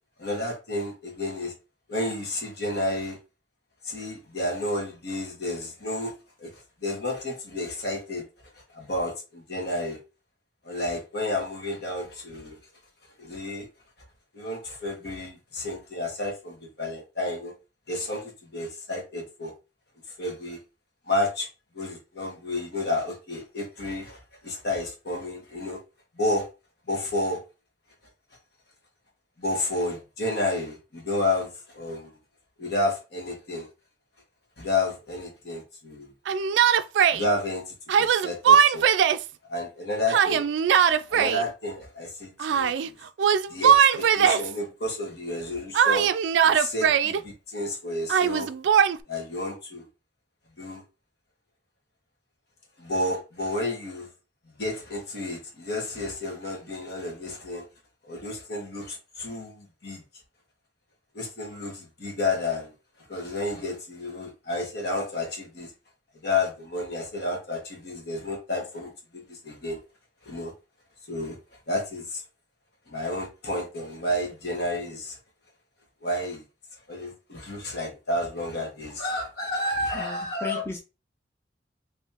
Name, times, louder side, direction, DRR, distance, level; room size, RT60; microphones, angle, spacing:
voice 1, 0.2-1.5 1.9-3.2 3.8-6.1 6.4-8.2 8.7-10.0 10.6-12.6 13.2-13.7 14.3-17.5 17.9-19.5 20.2-20.6 21.1-21.5 21.7-25.8 26.1-26.5 26.9-27.4 29.4-32.1 32.6-33.7 34.6-36.1 37.1-38.9 39.5-40.4 41.1-43.0 43.5-46.1 46.4-48.5 49.1-49.8 50.6-50.8 52.8-54.1 54.6-57.6 58.0-60.0 61.1-62.7 63.1-65.7 66.1-69.8 70.2-70.5 71.1-71.4 71.7-72.2 72.9-75.2 76.0-76.4 76.9-80.6, left 2 dB, 65° left, 1.5 m, -31 dB
Yell, 36.3-37.2 37.9-39.3 40.1-41.4 42.4-42.9 43.2-44.5 45.7-47.2 48.1-49.0, right 8 dB, 85° right, 0.3 m, -20 dB
voice 2, 79.9-80.8, left 1 dB, 15° left, 0.6 m, -35 dB
3.5 x 3.2 x 2.8 m
head